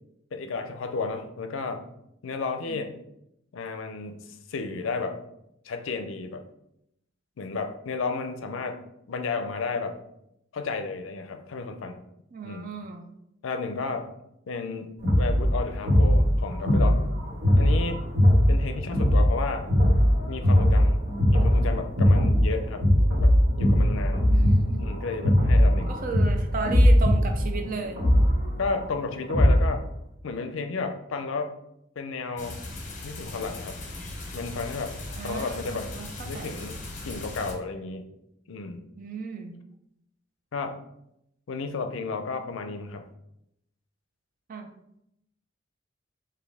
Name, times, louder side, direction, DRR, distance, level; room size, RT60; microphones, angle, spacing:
voice 1, 0.3-1.8 2.2-2.9 3.5-5.2 5.6-6.4 7.4-8.8 9.1-10.0 10.5-12.0 12.4-12.7 13.4-14.1 14.5-17.0 17.6-18.0 18.5-19.7 20.3-21.0 21.3-22.9 23.2-23.3 23.6-24.3 24.8-25.9 28.6-29.8 30.2-31.5 32.0-32.6 33.0-33.8 34.3-35.0 35.2-35.9 36.2-38.1 38.5-38.8 40.5-40.8 41.5-43.1, left 4 dB, 75° left, 7 dB, 0.4 m, -32 dB
voice 2, 12.3-13.1 17.6-17.8 24.3-24.9 25.9-28.0 35.2-36.1 36.3-36.6 39.0-39.5 44.5-44.7, right 4 dB, 45° right, 5 dB, 0.4 m, -34 dB
sound 1, 15.0-29.8, equal, 85° right, 1.5 m, -21 dB
sound 2, 32.4-37.5, left 2 dB, 40° left, 0.8 m, -38 dB
4.3 x 2.6 x 3.4 m, 0.80 s
head